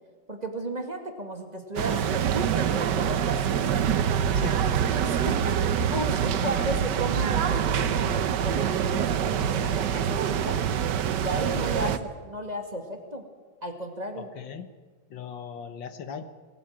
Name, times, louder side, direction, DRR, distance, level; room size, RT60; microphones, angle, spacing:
voice 1, 0.3-3.8 4.9-10.6 11.2-13.3 13.6-14.3, right 1 dB, 20° right, 4 dB, 2.4 m, -34 dB
sound 1, 1.8-12.0, right 8 dB, 65° right, 1.5 m, -25 dB
voice 2, 4.3-5.1 6.6-6.7 14.1-14.7 15.1-16.2, left 7 dB, 70° left, 9 dB, 2.0 m, -39 dB
21.5 x 17.5 x 8.9 m, 1.4 s
omnidirectional pair, 2.1 m